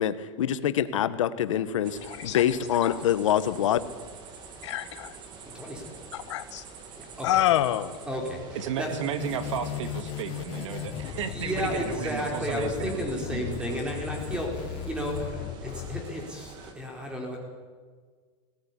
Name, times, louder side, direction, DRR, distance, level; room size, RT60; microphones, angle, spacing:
voice 1, 0.0-3.8, left 10 dB, 90° left, 12 dB, 1.4 m, -25 dB
sound 1, 1.8-16.7, right 5 dB, 30° right, 2.7 m, -46 dB
voice 2, 2.0-2.4 2.8-3.0 4.6-5.2 6.1-6.6 7.2-7.9, left 13 dB, 70° left, 12 dB, 1.4 m, -27 dB
voice 3, 5.5-5.9 6.9-7.3 8.0-8.9 9.4-9.5 11.3-17.4, equal, 5° right, 1 dB, 4.7 m, -33 dB
voice 4, 8.6-13.1 13.3-13.4, right 8 dB, 75° right, 10 dB, 2.3 m, -33 dB
sound 2, 9.2-16.0, left 9 dB, 35° left, 1.6 m, -36 dB
19.5 x 17.5 x 9.9 m, 1.5 s
supercardioid pair, 160°, 16 cm